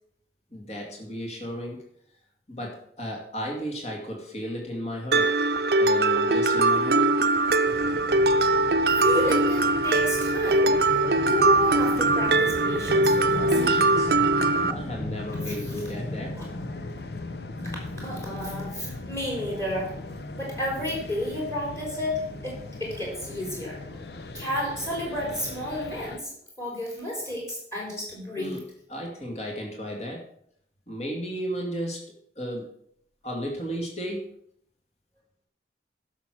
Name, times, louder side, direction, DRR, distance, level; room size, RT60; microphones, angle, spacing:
voice 1, 0.5-1.9 2.5-5.3 5.8-7.2 13.4-14.1 14.7-16.4 28.4-28.6 28.9-30.3 30.9-32.7 33.2-34.3, equal, 35° left, 1 dB, 2.4 m, -34 dB
Mallet percussion, 5.1-14.7, right 2 dB, 60° right, 0.6 m, -21 dB
sound 1, 7.6-26.2, left 2 dB, 70° left, 0.9 m, -37 dB
voice 2, 9.0-13.5 15.4-15.9 16.4-16.5 17.8-19.9 20.3-23.8 24.3-28.6, left 1 dB, 15° left, -2 dB, 3.9 m, -32 dB
11.5 x 6.4 x 6.2 m, 0.67 s
head